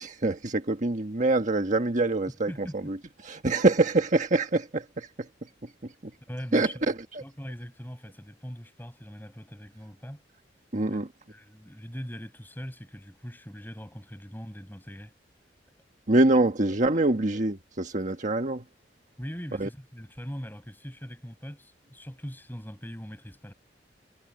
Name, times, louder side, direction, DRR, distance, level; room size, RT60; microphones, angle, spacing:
voice 1, 0.0-3.0 3.2-5.3 5.8-5.9 6.5-7.2 10.7-11.1 16.1-18.6 19.6-19.7, right 2 dB, 45° right, 1.4 m, -25 dB
voice 2, 2.3-2.8 6.3-6.8 7.2-10.2 10.9-11.0 11.3-15.2 16.9-17.1 19.2-23.5, equal, 10° left, 7.9 m, -41 dB
head